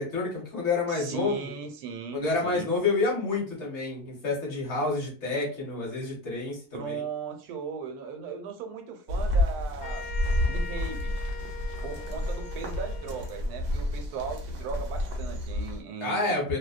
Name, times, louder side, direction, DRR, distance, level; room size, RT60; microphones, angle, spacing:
voice 1, 0.0-1.5 2.1-7.0 16.0-16.6, left 3 dB, 50° left, 1.1 m, -29 dB
voice 2, 0.9-2.7 6.7-10.1 10.5-11.2 11.8-16.4, right 6 dB, 75° right, 1.1 m, -38 dB
sound 1, 9.1-15.8, left 1 dB, 60° right, 0.7 m, -30 dB
sound 2, 9.8-13.5, left 5 dB, 90° left, 0.5 m, -42 dB
2.7 x 2.0 x 2.4 m
omnidirectional pair, 1.7 m